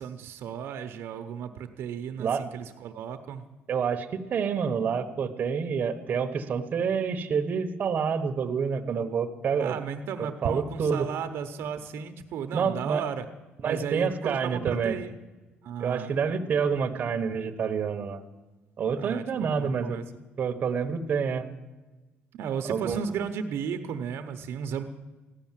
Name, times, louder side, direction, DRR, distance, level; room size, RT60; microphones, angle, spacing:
voice 1, 0.0-3.4 9.6-13.3 13.6-15.1 15.6-16.2 19.0-20.0 22.3-24.8, right 7 dB, 65° right, 7 dB, 0.9 m, -34 dB
voice 2, 3.7-9.8 10.4-11.1 12.5-13.0 13.6-15.0 15.8-18.2 18.8-20.0 20.4-21.4 22.7-23.0, right 6 dB, 40° right, 6 dB, 1.1 m, -28 dB
15.0 x 11.0 x 7.5 m, 1.2 s
cardioid pair, 145°, 4 cm